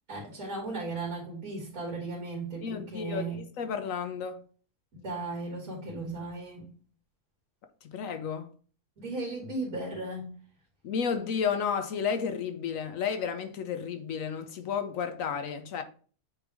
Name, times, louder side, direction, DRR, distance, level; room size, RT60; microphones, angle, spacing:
voice 1, 0.1-3.4 4.9-6.7 9.0-10.4, right 3 dB, 60° right, 2.4 m, -36 dB
voice 2, 2.6-4.4 7.8-8.5 10.8-15.8, left 6 dB, 65° left, 1.0 m, -32 dB
8.8 x 3.3 x 3.5 m
omnidirectional pair, 1.7 m